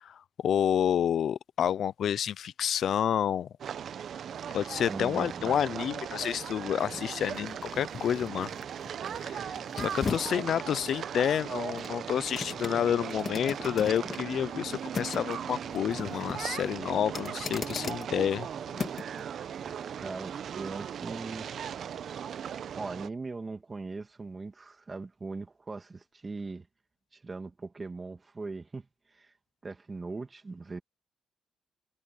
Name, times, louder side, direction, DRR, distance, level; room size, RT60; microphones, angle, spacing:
voice 1, 0.0-3.5 4.5-8.5 9.2-9.6 9.9-18.5, left 9 dB, 65° left, 0.6 m, -29 dB
sound 1, 3.6-23.1, right 8 dB, 60° right, 0.9 m, -38 dB
sound 2, 4.5-19.2 19.7-19.8, left 5 dB, 40° left, 3.0 m, -41 dB
voice 2, 4.9-5.6 19.8-21.5 22.7-26.7 27.1-29.3 29.6-30.8, right 3 dB, 25° right, 2.3 m, -40 dB
cardioid pair, 90°, 0 cm